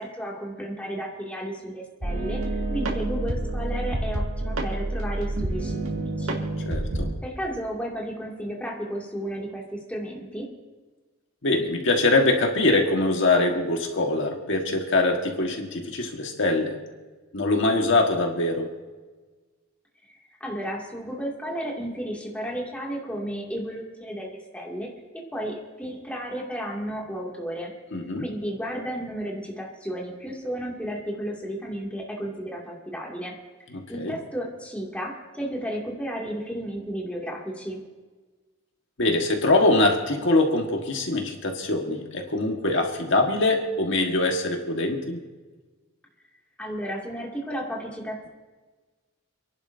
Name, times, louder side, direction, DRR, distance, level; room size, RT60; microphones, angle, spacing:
voice 1, 0.0-5.9 6.2-6.4 7.2-10.5 20.1-24.9 25.1-27.7 28.2-33.3 33.9-37.8 46.6-48.3, equal, 5° left, -3 dB, 2.5 m, -33 dB
sound 1, 2.0-7.1, right 2 dB, 85° right, 2.1 m, -28 dB
voice 2, 6.7-7.1 11.4-16.8 17.3-18.7 27.9-28.2 33.7-34.2 39.0-45.2, left 2 dB, 65° left, 2 dB, 1.7 m, -23 dB
29.0 x 11.0 x 2.8 m, 1.3 s
head